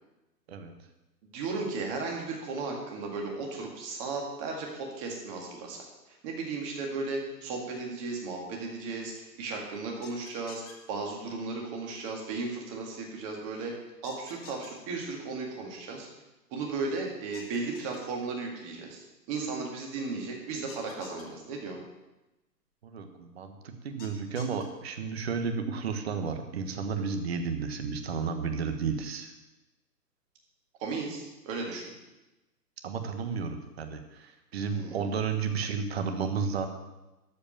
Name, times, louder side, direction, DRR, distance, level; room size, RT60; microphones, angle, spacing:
voice 1, 1.2-5.8 6.1-10.6 10.9-13.7 14.0-16.1 16.5-21.8 30.8-31.8 34.7-35.2, right 3 dB, 20° right, 0 dB, 1.9 m, -35 dB
sound 1, 10.0-10.7 14.0-14.7 17.3-18.0 20.7-21.2 24.0-24.6, left 6 dB, 20° left, 1.3 m, -48 dB
voice 2, 22.8-29.3 32.8-36.7, right 5 dB, 40° right, 6 dB, 1.4 m, -32 dB
13.0 x 5.1 x 8.7 m, 1.0 s
hypercardioid pair, 155°, 49 cm